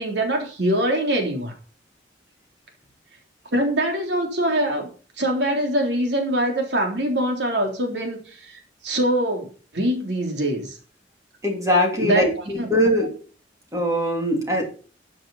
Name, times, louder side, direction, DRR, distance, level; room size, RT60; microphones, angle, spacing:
voice 1, 0.0-1.5 3.5-4.9 5.2-10.8 12.0-12.7, right 1 dB, 70° right, 3 dB, 3.5 m, -24 dB
voice 2, 11.4-13.1 13.7-14.6, left 1 dB, 20° right, 1 dB, 3.2 m, -21 dB
13.5 x 7.6 x 5.7 m, 0.39 s
head